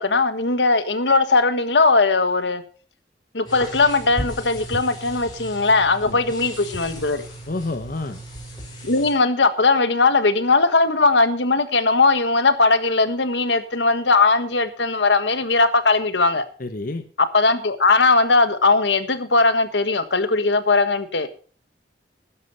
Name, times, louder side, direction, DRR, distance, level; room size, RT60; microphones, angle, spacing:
voice 1, 0.0-2.6 3.3-7.2 8.8-16.4 17.2-21.3, left 3 dB, 85° left, 1.5 m, -19 dB
sound 1, 3.4-9.1, equal, 25° left, 5.0 m, -36 dB
voice 2, 7.5-8.2 16.6-17.0, left 2 dB, 50° left, 1.0 m, -29 dB
12.5 x 10.5 x 5.5 m
head